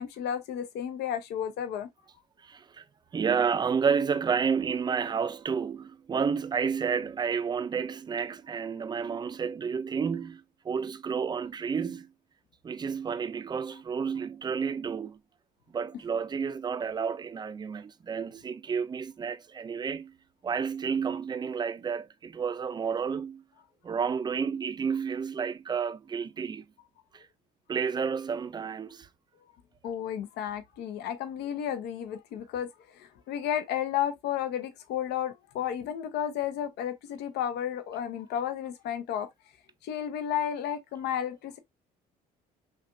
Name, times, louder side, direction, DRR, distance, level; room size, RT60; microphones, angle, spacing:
voice 1, 0.0-1.9 29.8-39.3 39.8-41.6, left 9 dB, 80° left, 0.7 m, -32 dB
voice 2, 2.4-2.8 3.1-12.1 12.6-15.2 15.7-20.2 20.4-23.4 23.8-26.7 27.1-27.3 27.7-29.1, right 6 dB, 25° right, 0.4 m, -30 dB
5.7 x 2.3 x 2.5 m
cardioid pair, 110°, 17 cm